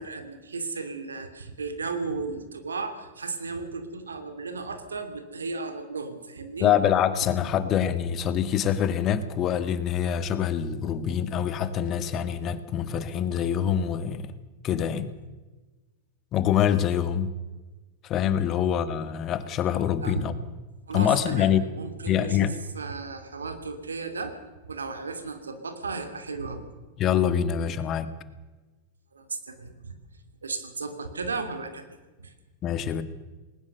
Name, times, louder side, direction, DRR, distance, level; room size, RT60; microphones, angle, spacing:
voice 1, 0.0-6.7 20.0-20.2 20.9-24.3 24.7-26.6 29.1-29.9 30.4-31.8 32.2-32.3, right 4 dB, 90° right, 8 dB, 2.8 m, -35 dB
voice 2, 6.6-14.3 14.6-15.1 16.3-17.3 18.0-20.3 20.9-21.6 22.1-22.5 27.0-28.1 32.6-33.0, left 9 dB, 40° left, 12 dB, 1.8 m, -25 dB
20.5 x 19.0 x 6.8 m, 1.2 s
hypercardioid pair, 95°, 0 cm